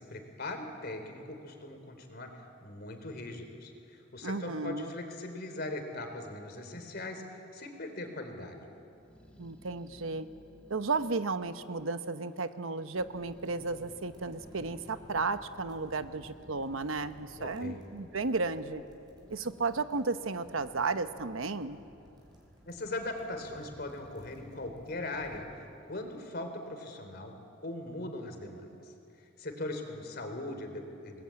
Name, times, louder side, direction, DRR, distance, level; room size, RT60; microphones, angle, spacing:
voice 1, 0.0-8.7 17.4-17.8 22.7-27.3 27.6-31.2, left 2 dB, 50° left, 5 dB, 3.6 m, -40 dB
voice 2, 4.2-4.9 9.4-10.3 10.7-18.8 19.3-21.8, right 3 dB, 85° right, 11 dB, 1.0 m, -33 dB
Growling, 8.9-12.7 13.0-15.3 15.9-21.7 22.0-22.7 23.2-26.9, equal, 5° left, 1.8 m, -59 dB
sound 1, 12.9-25.4, equal, 20° right, 4.9 m, -57 dB
29.5 x 20.5 x 8.8 m, 2.6 s
head